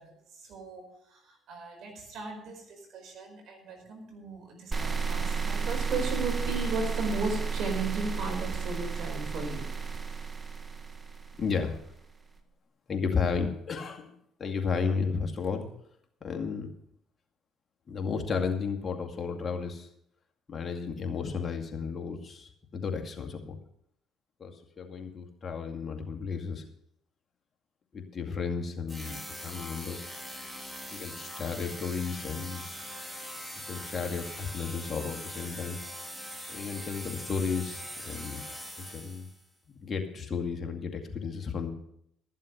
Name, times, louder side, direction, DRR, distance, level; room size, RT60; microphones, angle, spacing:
voice 1, 0.0-9.6, right 3 dB, 65° right, 2 dB, 4.8 m, -36 dB
sound 1, 4.7-11.8, right 5 dB, 30° right, 1.4 m, -32 dB
voice 2, 11.4-11.8 12.9-14.1 14.4-15.7 16.2-16.7 17.9-19.9 20.5-23.6 24.4-26.6 27.9-30.0 30.9-32.7 33.6-35.8 36.5-38.4 38.9-39.3 39.8-41.7, left 5 dB, 45° left, 3 dB, 2.2 m, -33 dB
sound 2, 28.9-39.4, equal, 10° right, 3.1 m, -42 dB
13.5 x 7.4 x 6.6 m, 0.72 s
supercardioid pair, 65°, 0 cm